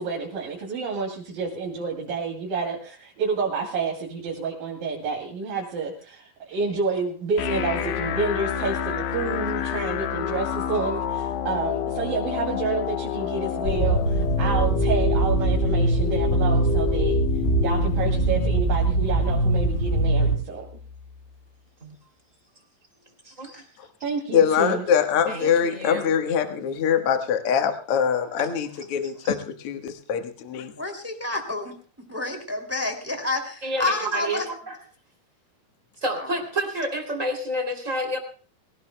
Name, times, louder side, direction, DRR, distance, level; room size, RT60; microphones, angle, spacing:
voice 1, 0.0-17.2 17.6-20.7 24.0-24.8, right 4 dB, 75° right, -1 dB, 4.2 m, -29 dB
sound 1, 7.4-21.3, left 9 dB, 90° left, 2.9 m, -29 dB
sound 2, 13.6-20.3, right 2 dB, 20° left, 3.7 m, -22 dB
voice 2, 23.2-23.6 25.3-26.1 28.4-28.5 33.6-34.8 36.0-38.2, right 1 dB, 20° right, 3 dB, 2.9 m, -29 dB
voice 3, 24.3-30.7, left 7 dB, 55° left, 6 dB, 1.8 m, -23 dB
voice 4, 30.8-31.8 32.1-34.5 36.2-36.3, left 2 dB, 5° right, 4 dB, 1.8 m, -29 dB
24.0 x 17.5 x 2.2 m, 0.40 s
omnidirectional pair, 4.1 m